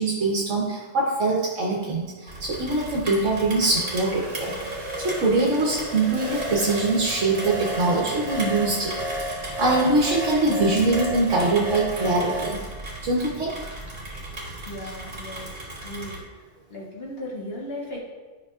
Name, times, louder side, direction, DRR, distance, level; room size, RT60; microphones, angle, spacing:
voice 1, 0.0-4.5 5.0-8.9 9.6-12.6 13.0-13.7, right 2 dB, 75° right, -3 dB, 1.3 m, -23 dB
Rain, 2.3-16.2, right 1 dB, 55° right, 1.7 m, -37 dB
sound 1, 3.5-12.5, equal, 35° right, 1.1 m, -33 dB
voice 2, 14.6-15.5 15.8-16.2 16.7-18.0, left 1 dB, 55° left, -4 dB, 1.4 m, -36 dB
11.0 x 5.8 x 2.4 m, 1.3 s
omnidirectional pair, 1.3 m